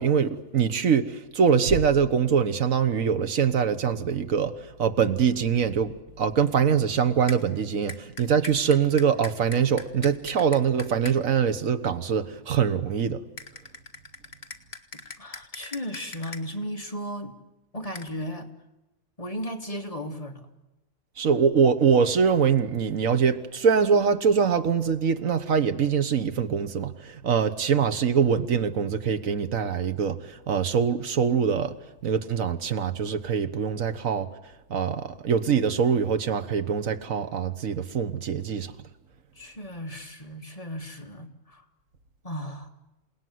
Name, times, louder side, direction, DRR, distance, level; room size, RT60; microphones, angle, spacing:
voice 1, 0.0-4.5 4.8-13.2 21.2-31.8 32.0-34.3 34.7-38.7, right 7 dB, 90° right, 1.6 m, -23 dB
sound 1, 7.3-7.4 7.9-11.2 13.4-16.4 17.9-18.1, left 3 dB, 45° left, 2.0 m, -40 dB
voice 2, 15.2-17.4 17.7-18.5 19.2-20.5 39.4-41.6 42.2-42.7, equal, 25° left, 2.2 m, -35 dB
28.0 x 18.5 x 9.4 m
omnidirectional pair, 1.3 m